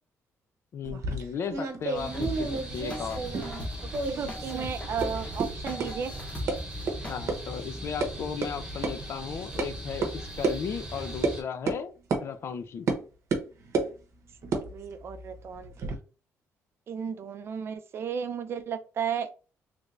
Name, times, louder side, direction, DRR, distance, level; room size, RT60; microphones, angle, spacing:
voice 1, 0.7-3.2 7.1-11.9 12.2-12.9, left 7 dB, 50° left, 10 dB, 0.5 m, -36 dB
sound 1, 0.8-3.7 3.9-4.7 5.0-5.1 5.4-5.5 5.8-5.9 6.5-6.6 6.9-7.0 7.3-7.4 7.7-8.1 8.4-8.5 8.8-8.9 9.6-9.7 10.0-10.1 10.4-10.6 11.2-11.4 11.7-11.8 12.1-12.2 12.9-13.0 13.3-13.9 14.4-16.0, right 3 dB, 60° right, 0.8 m, -30 dB
sound 2, 1.9-11.4, right 1 dB, 15° right, 1.1 m, -39 dB
sound 3, 2.1-7.2, left 1 dB, 25° left, 0.9 m, -40 dB
voice 2, 3.8-6.1 14.5-15.9 16.9-19.3, right 7 dB, 45° right, 10 dB, 0.5 m, -34 dB
3.3 x 3.2 x 2.5 m, 0.35 s
cardioid pair, 145°, 6 cm